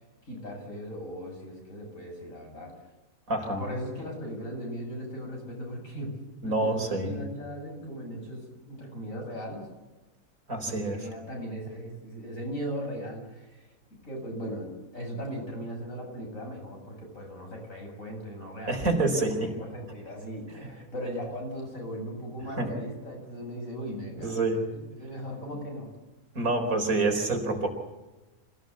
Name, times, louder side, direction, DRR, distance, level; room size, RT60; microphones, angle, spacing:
voice 1, 0.2-2.8 3.5-6.2 6.4-9.7 10.7-13.7 14.0-18.9 19.4-25.9, equal, 70° left, 1 dB, 7.9 m, -38 dB
voice 2, 3.3-3.6 6.4-7.2 10.5-11.1 18.7-19.5 20.6-20.7 22.6-22.7 24.2-24.7 26.3-27.7, right 2 dB, 85° right, 5 dB, 4.6 m, -27 dB
26.5 x 18.0 x 8.4 m, 1.1 s
omnidirectional pair, 1.4 m